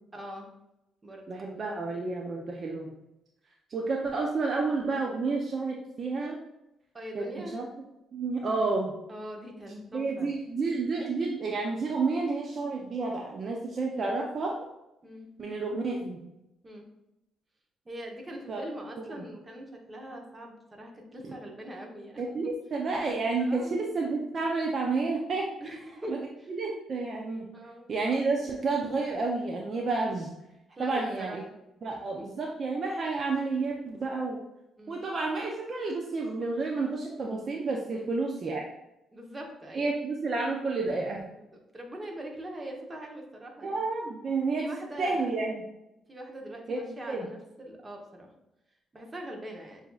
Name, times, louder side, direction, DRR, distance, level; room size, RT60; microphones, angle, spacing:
voice 1, 0.1-0.4 1.0-1.3 6.9-7.5 9.1-10.3 15.0-15.3 16.6-16.8 17.9-22.5 23.4-23.8 25.6-26.5 27.5-27.9 30.7-31.4 32.2-32.3 34.8-35.0 37.9-38.1 39.1-39.9 41.3-43.8 44.6-45.3 46.1-48.3 48.9-49.8, right 1 dB, 25° right, 0 dB, 1.0 m, -42 dB
voice 2, 1.3-2.9 3.7-6.4 7.1-7.7 8.1-8.9 9.9-14.5 15.4-16.2 18.5-18.6 19.1-19.2 22.2-25.5 26.1-26.2 26.5-27.5 27.9-30.3 30.8-31.4 31.8-34.4 34.9-38.7 39.7-41.3 43.6-44.7 45.0-45.7 46.7-47.3, right 3 dB, 45° right, -1 dB, 0.5 m, -30 dB
6.6 x 2.7 x 2.4 m, 0.90 s
cardioid pair, 90°, 0 cm